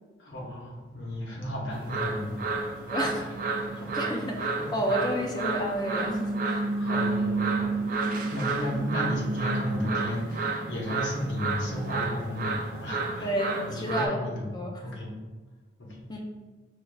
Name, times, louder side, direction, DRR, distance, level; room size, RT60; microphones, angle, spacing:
voice 1, 0.2-2.4 3.0-3.5 3.7-4.9 5.2-5.3 5.7-5.8 6.8-7.7 8.0-15.1 15.8-16.2, equal, 80° left, -2 dB, 1.0 m, -34 dB
sound 1, 1.7-14.1, right 3 dB, 45° right, 0.3 m, -30 dB
voice 2, 2.9-3.2 3.9-6.7 13.2-14.8 16.1-16.2, equal, 20° left, 1 dB, 0.4 m, -31 dB
6.4 x 2.3 x 2.3 m, 1.3 s
head